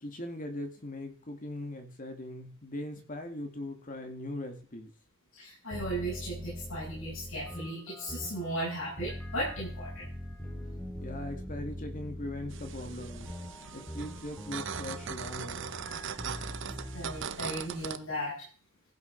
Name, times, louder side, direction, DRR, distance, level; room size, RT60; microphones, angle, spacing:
voice 1, 0.0-4.9 11.0-13.4 13.7-15.7, left 1 dB, 40° left, 6 dB, 2.1 m, -40 dB
voice 2, 5.3-10.1 16.9-18.5, right 1 dB, 75° left, -8 dB, 7.8 m, -36 dB
sound 1, 5.7-17.3, left 1 dB, 10° left, 2.2 m, -42 dB
sound 2, 12.5-18.0, right 7 dB, 65° right, 0.7 m, -40 dB
15.5 x 6.4 x 5.7 m, 0.40 s
head